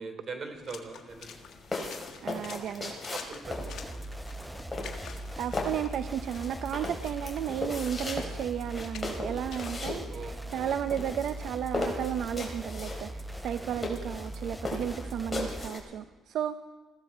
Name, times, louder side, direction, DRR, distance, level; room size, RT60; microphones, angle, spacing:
voice 1, 0.0-1.4 3.1-4.0 10.0-10.8, right 4 dB, 50° right, 6 dB, 3.3 m, -42 dB
Water / Splash splatter, 0.5-9.9, left 8 dB, 70° left, 1.7 m, -50 dB
sound 1, 1.1-15.8, left 2 dB, 20° left, 4.1 m, -37 dB
voice 2, 2.2-3.0 5.4-16.6, right 9 dB, 75° right, 11 dB, 0.6 m, -34 dB
sound 2, 3.4-15.7, right 1 dB, 5° right, 0.6 m, -40 dB
21.0 x 15.5 x 4.4 m, 1.3 s
cardioid pair, 90°, 0 cm